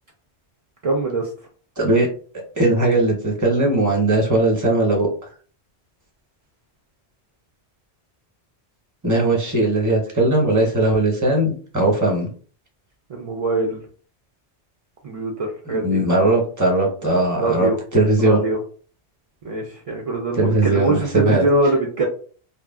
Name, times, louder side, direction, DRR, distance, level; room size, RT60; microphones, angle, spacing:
voice 1, 0.8-1.3 13.1-13.8 15.0-16.0 17.4-17.8 18.2-18.6 19.4-22.1, right 2 dB, 50° right, 0 dB, 0.4 m, -23 dB
voice 2, 1.8-2.1 2.6-5.1 9.0-12.3 15.7-18.4 20.3-21.4, right 2 dB, 20° right, -1 dB, 0.8 m, -19 dB
2.3 x 2.0 x 3.5 m, 0.42 s
omnidirectional pair, 1.1 m